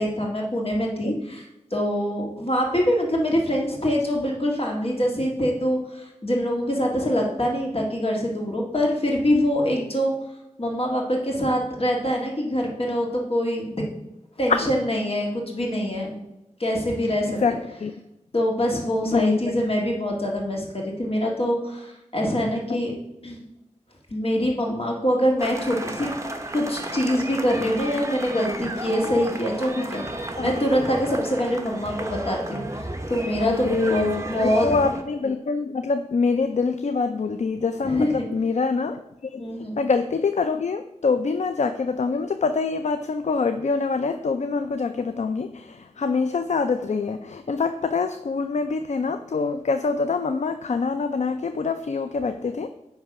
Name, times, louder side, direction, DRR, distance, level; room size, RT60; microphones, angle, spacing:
voice 1, 0.0-10.1 10.6-13.8 14.4-16.1 16.6-17.4 18.3-22.9 23.2-23.4 24.1-26.1 26.5-30.0 30.4-34.7 37.8-38.3 39.4-39.8, equal, 50° left, -1 dB, 1.9 m, -24 dB
voice 2, 19.1-19.6 22.7-22.8 30.4-30.5 33.4-34.2 34.6-52.7, left 4 dB, 65° left, 8 dB, 0.4 m, -25 dB
sound 1, 25.4-35.0, right 1 dB, 25° right, 0.9 m, -33 dB
9.5 x 3.3 x 6.0 m, 0.91 s
wide cardioid pair, 70°, 13 cm